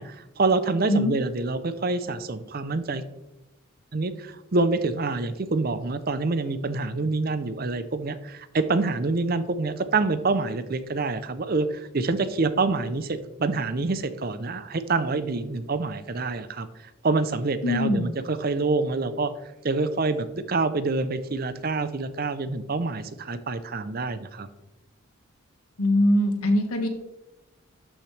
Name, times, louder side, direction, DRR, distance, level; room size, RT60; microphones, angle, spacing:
voice 1, 0.0-3.0 3.9-16.7 17.0-19.3 19.6-24.5, right 3 dB, 40° right, 12 dB, 0.6 m, -26 dB
voice 2, 17.6-18.1 25.8-26.9, left 1 dB, 85° left, 5 dB, 1.5 m, -22 dB
12.0 x 6.1 x 3.3 m, 0.96 s
head